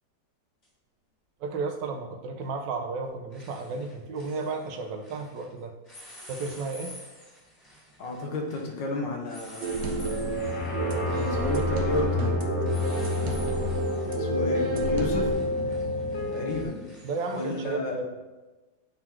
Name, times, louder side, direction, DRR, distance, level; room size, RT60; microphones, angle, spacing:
sound 1, 0.6-0.7 2.5-2.8 3.0-5.5 5.8-17.7, left 1 dB, 40° left, 2.6 m, -50 dB
voice 1, 1.4-5.7 6.2-6.9 17.0-18.1, right 4 dB, 85° right, 4 dB, 1.5 m, -33 dB
voice 2, 8.0-10.5 11.1-12.4 12.7-13.7 14.2-15.4 16.3-16.9 17.3-18.0, left 2 dB, 85° left, 1 dB, 1.9 m, -33 dB
sound 2, 9.6-15.3, right 3 dB, 55° right, 0.7 m, -31 dB
sound 3, 10.0-16.6, left 2 dB, 60° left, 1.5 m, -29 dB
8.6 x 4.0 x 4.5 m, 1.2 s
omnidirectional pair, 1.9 m